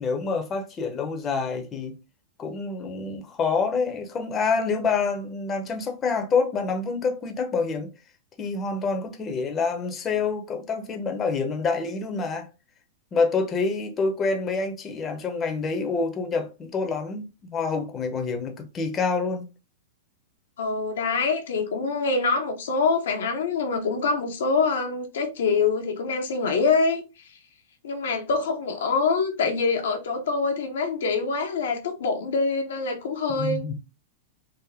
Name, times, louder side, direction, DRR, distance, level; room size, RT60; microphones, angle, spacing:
voice 1, 0.0-2.0 2.4-7.9 8.4-12.5 13.1-19.4 33.4-33.7, left 4 dB, 25° left, 0.8 m, -27 dB
voice 2, 20.6-27.0 27.8-33.7, left 4 dB, 80° left, 0.9 m, -25 dB
3.6 x 2.1 x 3.4 m
hypercardioid pair, 120°, 0 cm